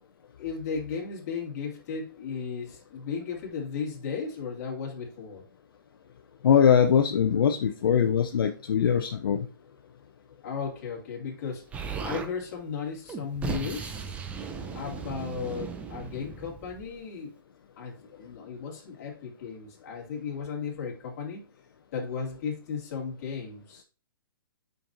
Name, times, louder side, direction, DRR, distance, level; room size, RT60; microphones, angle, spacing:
voice 1, 0.4-5.4 10.4-11.7 12.0-14.0 14.7-17.3 17.8-21.4 21.9-23.8, left 6 dB, 40° left, -1 dB, 2.4 m, -35 dB
voice 2, 6.4-9.5, left 8 dB, 70° left, 4 dB, 0.7 m, -22 dB
Explosion, 11.7-12.3 13.1-16.9, right 5 dB, 10° right, 0.6 m, -36 dB
7.6 x 5.3 x 2.8 m, 0.39 s
hypercardioid pair, 145°, 12 cm